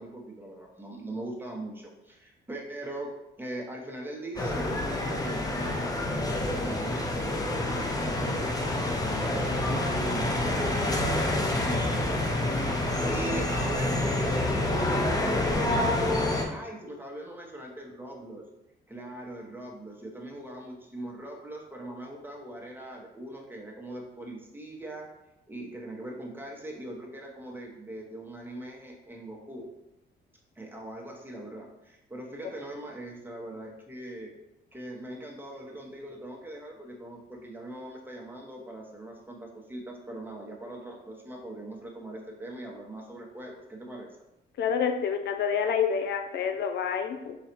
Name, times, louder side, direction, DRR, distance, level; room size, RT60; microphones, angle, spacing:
voice 1, 0.0-3.1 3.4-9.0 9.3-12.7 13.1-18.4 18.9-25.1 25.5-29.7 30.6-34.3 34.7-44.1, right 1 dB, 10° right, -1 dB, 0.9 m, -41 dB
sound 1, 4.4-16.4, left 1 dB, 20° left, 0.7 m, -27 dB
voice 2, 44.6-47.4, left 7 dB, 60° left, 6 dB, 0.4 m, -28 dB
4.0 x 2.3 x 4.3 m, 0.92 s
cardioid pair, 90°, 20 cm